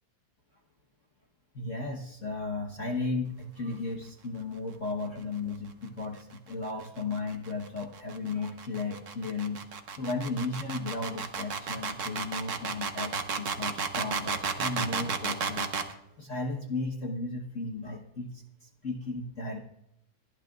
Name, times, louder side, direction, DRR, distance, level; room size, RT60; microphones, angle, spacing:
voice 1, 1.5-15.7 16.2-19.6, left 3 dB, 45° left, 1 dB, 1.3 m, -35 dB
sound 1, 6.7-15.9, right 5 dB, 45° right, 1.2 m, -33 dB
26.0 x 12.0 x 2.4 m, 0.79 s
omnidirectional pair, 2.3 m